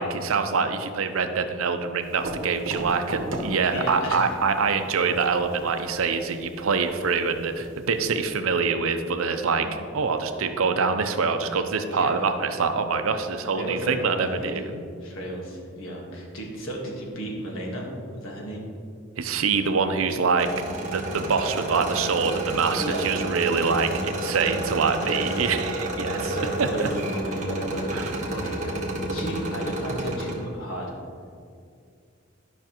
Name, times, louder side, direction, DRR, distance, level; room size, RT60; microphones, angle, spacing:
voice 1, 0.0-14.7 19.2-20.5 20.8-26.9 27.9-28.1, right 5 dB, 85° right, 8 dB, 0.6 m, -25 dB
sound 1, 2.0-8.4, right 1 dB, 65° right, 1.1 m, -38 dB
voice 2, 3.7-4.3 9.6-9.8 11.8-12.2 13.5-18.6 22.7-23.5 25.0-25.3 26.3-28.8 29.1-30.9, equal, 75° left, -1 dB, 1.5 m, -33 dB
sound 2, 20.4-30.3, right 1 dB, 35° right, 1.2 m, -30 dB
11.0 x 5.8 x 3.0 m, 2.3 s
head